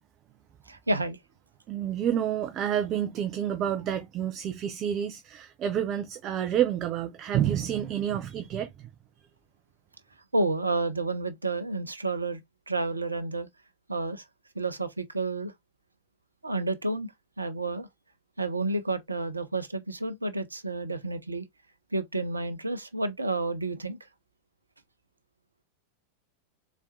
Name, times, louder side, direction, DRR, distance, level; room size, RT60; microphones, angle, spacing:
voice 1, 0.7-1.2 10.3-12.4 12.7-13.5 13.9-14.2 14.6-15.5 16.4-17.1 17.4-17.9 18.4-21.5 21.9-24.0, right 2 dB, 80° right, 0.6 m, -30 dB
voice 2, 1.7-8.9, right 10 dB, 35° right, 0.5 m, -29 dB
4.1 x 3.5 x 2.5 m
figure-of-eight pair, 90°, 0 cm